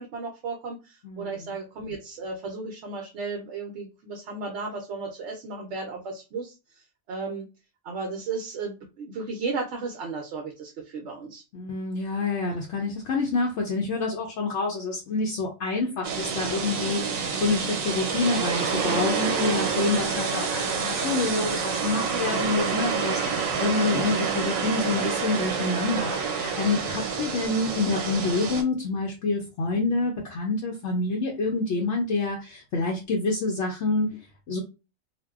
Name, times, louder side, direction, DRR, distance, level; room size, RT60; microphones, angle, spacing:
voice 1, 0.0-7.5 7.8-11.4 18.7-19.1 22.1-22.4, right 3 dB, 65° right, 1 dB, 0.8 m, -35 dB
voice 2, 1.0-1.4 11.5-34.6, left 3 dB, 70° left, 0 dB, 0.8 m, -27 dB
sound 1, 16.0-28.6, right 6 dB, 85° right, 1.1 m, -28 dB
2.5 x 2.2 x 2.3 m, 0.29 s
omnidirectional pair, 1.4 m